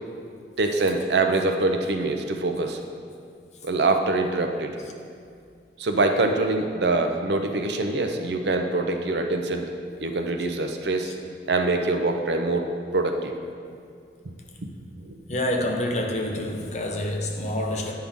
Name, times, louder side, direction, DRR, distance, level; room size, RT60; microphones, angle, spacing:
voice 1, 0.6-2.8 3.6-4.7 5.8-9.7 10.0-11.1 11.5-13.3 15.0-15.1, right 2 dB, 70° right, 5 dB, 0.6 m, -24 dB
voice 2, 15.3-17.9, left 1 dB, 40° left, 2 dB, 0.7 m, -27 dB
9.9 x 5.6 x 3.6 m, 2.3 s
head